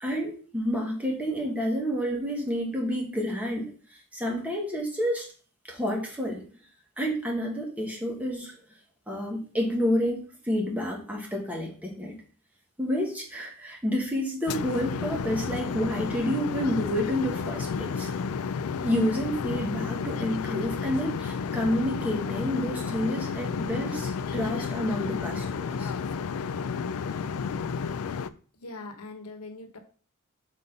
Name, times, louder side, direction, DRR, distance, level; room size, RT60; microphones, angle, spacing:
voice 1, 0.0-3.7 4.1-5.3 5.7-6.4 7.0-8.5 9.1-12.2 12.8-18.1 18.8-25.9, equal, 5° right, -1 dB, 1.4 m, -29 dB
sound 1, 14.5-28.3, left 5 dB, 70° left, 0.4 m, -32 dB
voice 2, 28.5-29.8, left 2 dB, 90° left, 6 dB, 1.1 m, -41 dB
5.2 x 4.1 x 5.2 m, 0.41 s
head